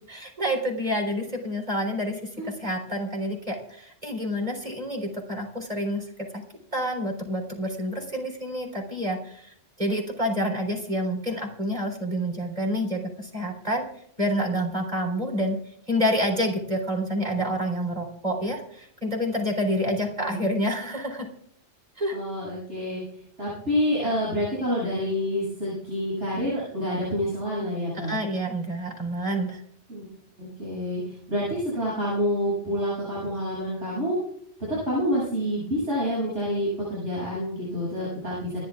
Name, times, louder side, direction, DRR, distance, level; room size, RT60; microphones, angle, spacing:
voice 1, 0.1-2.2 2.4-6.0 6.3-6.4 6.7-13.9 14.2-15.6 15.9-21.3 22.0-22.2 28.0-29.6, equal, 35° right, 2 dB, 4.0 m, -28 dB
voice 2, 19.7-20.5 22.1-23.0 23.4-28.2 29.9-30.1 30.4-34.2 34.9-38.6, equal, 70° right, -7 dB, 8.2 m, -28 dB
28.0 x 11.5 x 2.4 m, 0.67 s
omnidirectional pair, 1.2 m